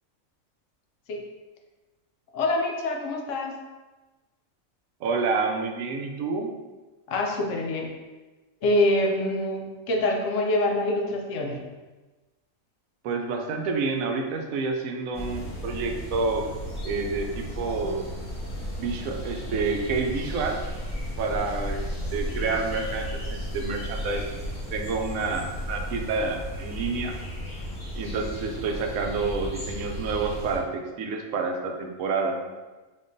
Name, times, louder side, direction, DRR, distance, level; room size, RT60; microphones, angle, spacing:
voice 1, 2.3-3.6 7.1-7.9 8.6-11.6, left 1 dB, 70° left, 1 dB, 0.9 m, -25 dB
voice 2, 5.0-6.5 13.0-16.4 16.8-18.0 18.8-20.6 21.2-21.8 22.1-24.4 24.7-27.2 28.0-32.4, right 4 dB, 85° right, 3 dB, 1.0 m, -28 dB
sound 1, 15.1-30.6, equal, 5° left, 1.4 m, -34 dB
4.1 x 3.6 x 2.5 m, 1.2 s
omnidirectional pair, 1.4 m